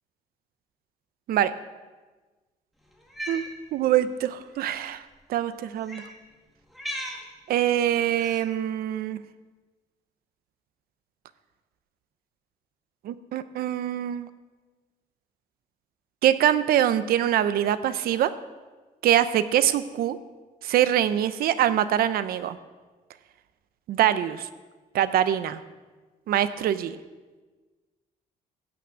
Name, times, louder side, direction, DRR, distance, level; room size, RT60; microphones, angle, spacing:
Cat, 3.0-3.5 4.5-4.7 5.8-6.1 6.7-7.2 8.2-8.5, equal, ahead, 1.9 m, -36 dB
voice 1, 3.7-5.0 5.3-6.1 7.5-9.2 13.0-14.3 16.2-18.3 19.0-20.2 20.6-22.6 23.9-24.5 24.9-25.6 26.3-27.0, right 11 dB, 80° right, 13 dB, 0.7 m, -24 dB
15.0 x 6.0 x 8.3 m, 1.3 s
cardioid pair, 150°, 15 cm